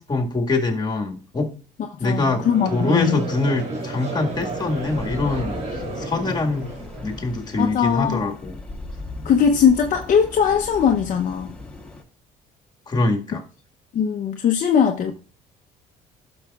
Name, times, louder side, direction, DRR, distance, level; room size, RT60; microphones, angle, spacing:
voice 1, 0.0-1.5 2.0-6.7 7.0-8.5 12.9-13.4, left 2 dB, 25° left, 1.8 m, -24 dB
voice 2, 2.0-3.2 7.6-8.3 9.2-11.5 13.9-15.1, left 7 dB, 50° left, 0.8 m, -20 dB
Conversation / Crowd, 2.2-7.5, right 2 dB, 40° right, 3.1 m, -32 dB
sound 1, 4.3-12.0, left 2 dB, 5° left, 1.8 m, -38 dB
12.0 x 6.3 x 2.4 m
cardioid pair, 110°, 17 cm